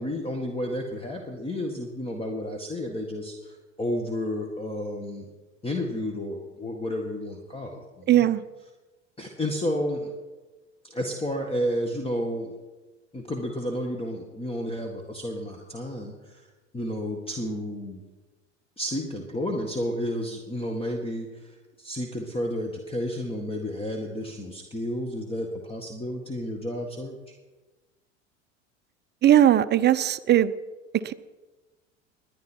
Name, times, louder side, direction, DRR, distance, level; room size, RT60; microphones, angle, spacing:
voice 1, 0.0-5.3 5.6-7.8 8.1-8.3 9.2-10.1 10.8-12.5 13.1-16.4 16.7-18.0 18.8-21.5 21.8-27.2, equal, 15° left, 2 dB, 1.9 m, -31 dB
voice 2, 8.1-8.4 29.2-30.5 31.0-31.1, right 11 dB, 30° right, 12 dB, 0.7 m, -19 dB
21.0 x 10.0 x 4.6 m, 1.2 s
hypercardioid pair, 80°, 37 cm